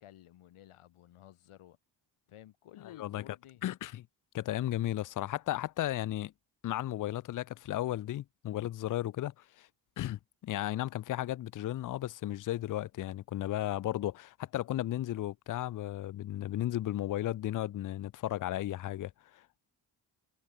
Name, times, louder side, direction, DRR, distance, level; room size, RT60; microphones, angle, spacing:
voice 1, 0.0-1.8 2.3-3.7, left 12 dB, 85° left, 6.6 m, -54 dB
voice 2, 3.6-4.1 4.3-6.3 6.6-9.7 10.0-19.6, left 13 dB, 40° left, 0.4 m, -34 dB
cardioid pair, 60°, 49 cm